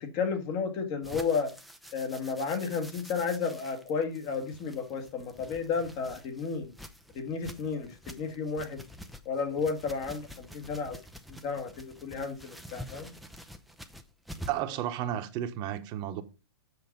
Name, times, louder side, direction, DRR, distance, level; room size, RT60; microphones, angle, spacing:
voice 1, 0.0-1.5 1.9-6.7 7.1-8.8 9.3-11.0 11.3-13.1, left 5 dB, 35° left, 1.8 m, -32 dB
sound 1, 1.0-14.7, equal, ahead, 0.6 m, -48 dB
voice 2, 14.5-16.2, right 11 dB, 30° right, 1.1 m, -32 dB
8.0 x 6.4 x 5.2 m
hypercardioid pair, 130°, 14 cm